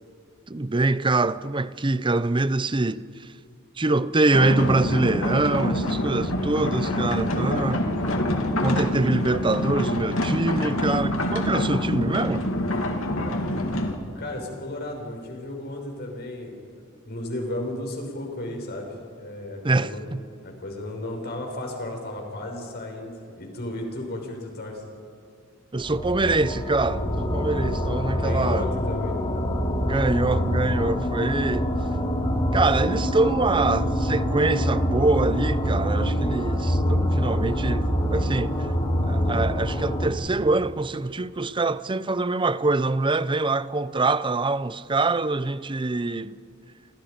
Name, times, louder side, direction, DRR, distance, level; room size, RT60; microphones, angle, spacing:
voice 1, 0.5-3.3 3.8-7.9 8.6-12.5 19.6-20.2 25.7-28.7 29.8-31.7 32.5-38.7 39.0-46.4, right 2 dB, 25° right, 0.7 m, -24 dB
sound 1, 4.3-13.9, left 1 dB, 90° left, 2.8 m, -26 dB
voice 2, 14.1-16.6 17.0-20.1 20.4-24.8 28.1-29.1, left 1 dB, 50° left, 6.0 m, -34 dB
sound 2, 25.8-40.1, equal, 25° left, 3.2 m, -25 dB
28.5 x 28.0 x 5.2 m
head